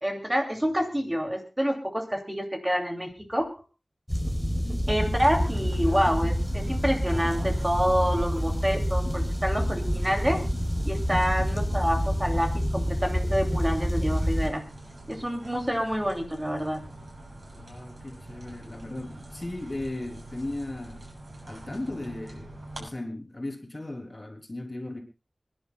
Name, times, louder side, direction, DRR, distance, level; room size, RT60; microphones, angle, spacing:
voice 1, 0.0-3.5 4.9-10.4 10.8-14.6 15.1-16.8, equal, 20° right, 3 dB, 2.8 m, -27 dB
sound 1, 4.1-14.5, equal, ahead, 4.7 m, -27 dB
voice 2, 4.6-4.9 17.6-21.0 21.4-25.0, left 2 dB, 40° left, 2 dB, 3.6 m, -37 dB
sound 2, 5.1-22.9, right 1 dB, 60° right, 6.8 m, -44 dB
27.5 x 11.0 x 2.4 m, 0.31 s
wide cardioid pair, 50°, 0 cm